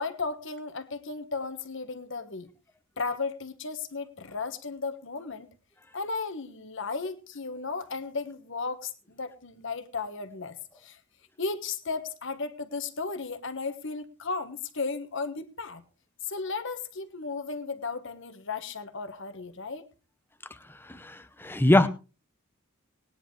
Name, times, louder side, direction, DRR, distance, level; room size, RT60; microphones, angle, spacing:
voice 1, 0.0-2.5 3.0-5.5 5.9-11.0 11.4-15.8 16.2-19.9, left 4 dB, 60° left, 10 dB, 1.3 m, -35 dB
voice 2, 20.9-21.9, left 1 dB, 10° left, 11 dB, 0.8 m, -22 dB
19.5 x 10.0 x 3.2 m, 0.32 s
head